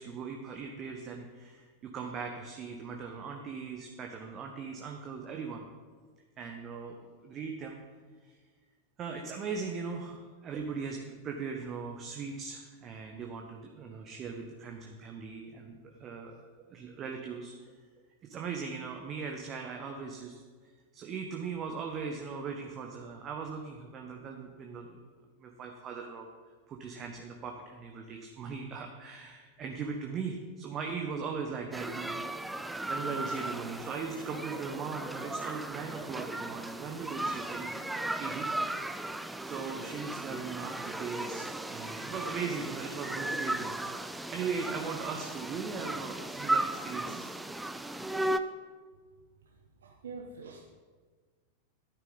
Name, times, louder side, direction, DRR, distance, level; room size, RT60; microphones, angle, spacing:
voice 1, 0.0-5.6 6.4-7.0 7.2-7.8 8.2-8.4 9.0-17.5 18.3-20.4 20.9-25.0 25.4-26.3 26.7-32.2 32.9-38.5 38.9-39.0 39.4-47.3, right 5 dB, 30° right, 2 dB, 1.2 m, -39 dB
sound 1, 31.7-48.4, right 1 dB, 5° right, 0.5 m, -36 dB
voice 2, 49.4-50.6, right 4 dB, 65° right, 0 dB, 1.2 m, -46 dB
12.5 x 10.0 x 4.0 m, 1.5 s
figure-of-eight pair, 90°, 0 cm